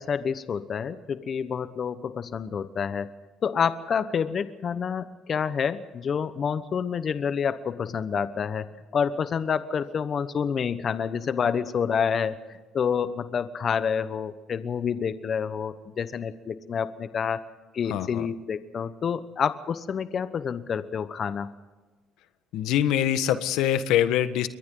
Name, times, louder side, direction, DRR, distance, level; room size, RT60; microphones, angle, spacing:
voice 1, 0.0-3.1 3.4-8.7 8.9-17.4 17.7-21.5, left 7 dB, 45° left, 12 dB, 1.1 m, -28 dB
voice 2, 17.9-18.3 22.5-24.5, left 11 dB, 80° left, 11 dB, 1.4 m, -24 dB
30.0 x 23.0 x 3.9 m, 1.3 s
supercardioid pair, 85°, 0 cm